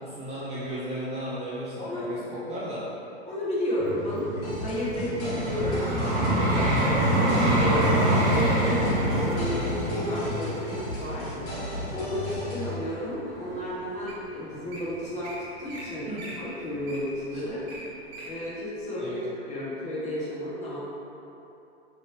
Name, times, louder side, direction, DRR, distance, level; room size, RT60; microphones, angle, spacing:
voice 1, 0.0-2.9 7.7-8.1 16.1-16.2 17.3-17.4 19.0-19.2, equal, 20° right, -9 dB, 0.5 m, -35 dB
voice 2, 1.8-2.1 3.2-7.8 8.2-10.7 11.0-11.5 11.9-15.3 15.6-16.1 16.4-17.6 18.3-20.8, left 1 dB, 20° left, -7 dB, 0.8 m, -32 dB
Vehicle, 3.8-12.9 13.5-13.7, right 1 dB, 85° right, 1.0 m, -26 dB
sound 1, 4.4-12.8, left 1 dB, 55° left, 1.5 m, -35 dB
Wild animals, 8.4-9.1 9.8-10.1 10.6-11.1 11.6-12.5 13.1-13.2 13.8-13.9 14.1-14.2 14.5-14.8 15.2-15.4 15.7-15.9 16.1-18.3 18.8-18.9, right 1 dB, 50° right, 0.8 m, -43 dB
2.9 x 2.6 x 3.3 m, 2.9 s
hypercardioid pair, 115°, 34 cm